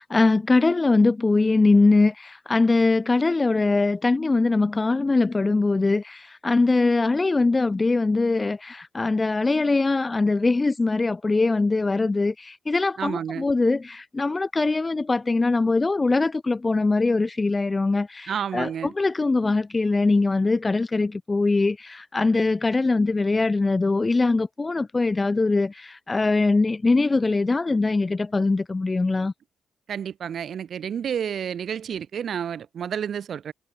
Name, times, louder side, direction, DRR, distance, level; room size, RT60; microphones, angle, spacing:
voice 1, 0.0-29.3, left 3 dB, 25° left, 1.2 m, -22 dB
voice 2, 13.0-13.4 18.3-18.9 29.9-33.5, right 8 dB, 60° right, 2.1 m, -30 dB
cardioid pair, 90°, 0 cm